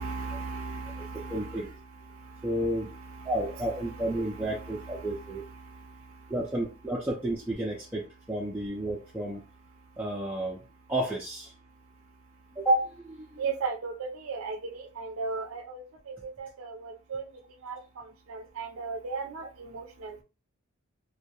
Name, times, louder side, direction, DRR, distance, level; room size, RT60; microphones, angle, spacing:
voice 1, 0.0-1.8 2.0-6.3 13.4-20.2, right 4 dB, 65° right, 5 dB, 0.4 m, -38 dB
voice 2, 1.3-1.7 2.4-2.9 3.2-5.4 6.3-9.4 10.0-11.5 12.6-13.4, right 1 dB, 10° right, -5 dB, 0.4 m, -31 dB
2.2 x 2.0 x 2.8 m, 0.31 s
head